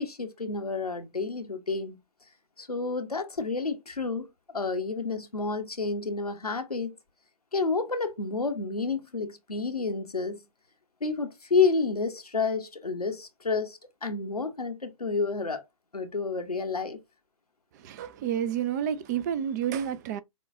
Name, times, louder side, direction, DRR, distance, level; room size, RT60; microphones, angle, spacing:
voice 1, 0.0-2.0 2.6-4.3 4.5-7.0 7.5-10.4 11.0-15.6 15.9-17.0, left 4 dB, 90° left, 0.9 m, -30 dB
voice 2, 17.8-20.2, right 9 dB, 30° right, 0.4 m, -30 dB
6.2 x 2.2 x 2.6 m
figure-of-eight pair, 115°, 19 cm